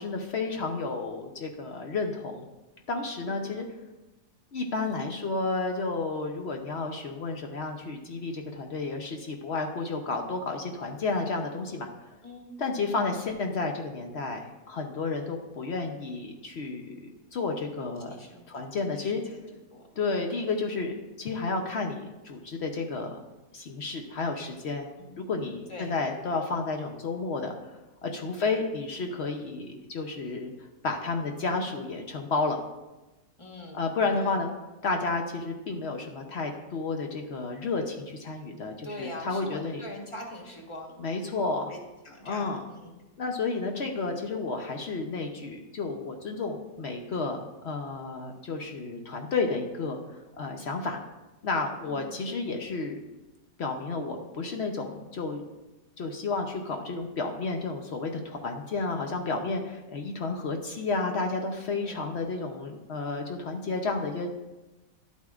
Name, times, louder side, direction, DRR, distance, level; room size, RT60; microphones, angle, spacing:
voice 1, 0.0-2.4 2.9-3.6 4.5-11.9 12.6-18.1 18.5-19.2 20.0-23.2 23.5-30.5 30.8-32.6 33.7-34.5 34.8-39.8 41.0-41.7 42.2-42.6 43.2-51.0 51.4-53.0 53.6-55.4 56.0-64.3, left 3 dB, 60° left, 3 dB, 0.7 m, -31 dB
voice 2, 18.1-19.4 19.7-19.8 25.0-25.2 25.7-25.9 33.4-33.9 34.1-34.3 38.8-41.0 41.7-43.0 43.8-43.9 51.8-52.1 58.8-59.1 61.7-62.1, left 1 dB, 20° left, 0 dB, 1.1 m, -43 dB
11.5 x 8.2 x 2.4 m, 1.1 s
omnidirectional pair, 1.8 m